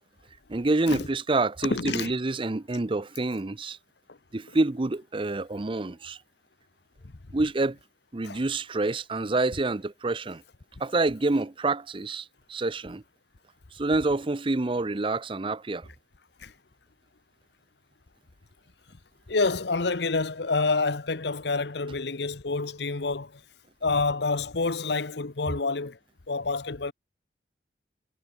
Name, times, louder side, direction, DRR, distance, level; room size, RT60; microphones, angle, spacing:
voice 1, 0.5-3.8 4.3-6.2 7.3-7.8 8.1-10.4 10.8-13.0 13.8-15.9, right 2 dB, 30° right, 0.6 m, -27 dB
voice 2, 1.6-2.1 4.1-4.2 8.2-8.4 16.4-16.5 19.3-23.4 23.8-26.0 26.3-26.9, left 3 dB, 65° left, 1.0 m, -28 dB
head